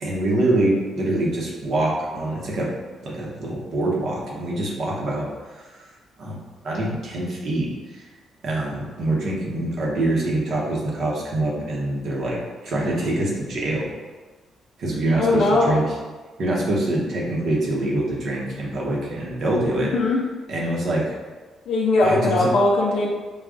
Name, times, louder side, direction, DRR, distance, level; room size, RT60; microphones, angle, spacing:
voice 1, 0.0-2.7 3.0-5.7 6.2-6.4 6.6-8.0 8.4-12.4 12.6-13.9 14.8-15.9 16.4-19.9 20.5-21.2 22.0-22.5, right 1 dB, 60° right, -3 dB, 0.9 m, -25 dB
voice 2, 15.2-15.8 19.9-20.2 21.7-23.1, left 2 dB, 75° left, -3 dB, 0.4 m, -19 dB
4.9 x 2.3 x 2.4 m, 1.3 s
cardioid pair, 90°, 0 cm